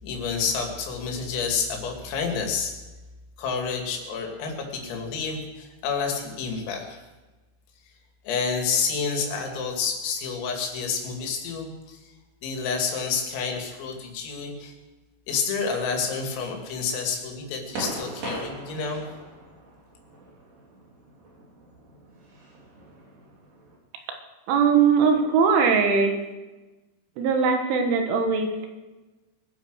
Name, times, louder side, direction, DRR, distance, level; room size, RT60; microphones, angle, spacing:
voice 1, 0.0-2.7 3.4-7.0 8.2-12.1 12.4-14.7 15.3-19.1, left 5 dB, 90° left, 2 dB, 5.1 m, -29 dB
sound 1, 17.7-23.8, right 2 dB, 50° right, 4.2 m, -40 dB
voice 2, 24.5-26.2 27.2-28.7, right 5 dB, 75° right, 5 dB, 3.8 m, -20 dB
22.5 x 10.0 x 6.3 m, 1.2 s
omnidirectional pair, 5.8 m